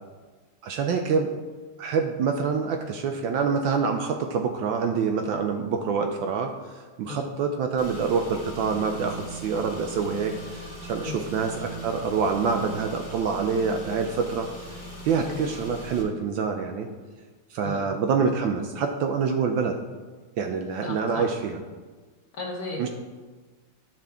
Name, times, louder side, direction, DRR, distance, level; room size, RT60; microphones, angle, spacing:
voice 1, 0.6-1.3 1.8-14.7 15.0-16.9 17.5-19.8 20.4-21.6 22.8-22.9, right 5 dB, 75° right, 5 dB, 1.2 m, -26 dB
Car / Engine, 7.8-16.0, right 1 dB, 15° left, 1.6 m, -40 dB
voice 2, 15.2-15.6 17.6-17.9 20.8-21.3 22.4-22.9, left 3 dB, 50° left, -2 dB, 1.3 m, -35 dB
11.0 x 5.5 x 3.5 m, 1.4 s
omnidirectional pair, 2.4 m